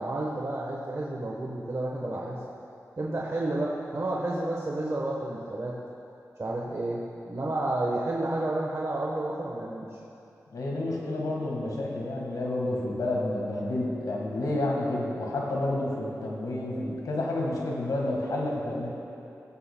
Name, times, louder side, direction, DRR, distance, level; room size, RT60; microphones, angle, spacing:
voice 1, 0.0-2.4 3.0-5.7 6.4-9.9, right 2 dB, 50° right, -3 dB, 1.1 m, -31 dB
voice 2, 10.5-18.9, left 2 dB, 90° left, -2 dB, 1.6 m, -30 dB
17.0 x 8.5 x 2.2 m, 2.7 s
cardioid pair, 50°, 6 cm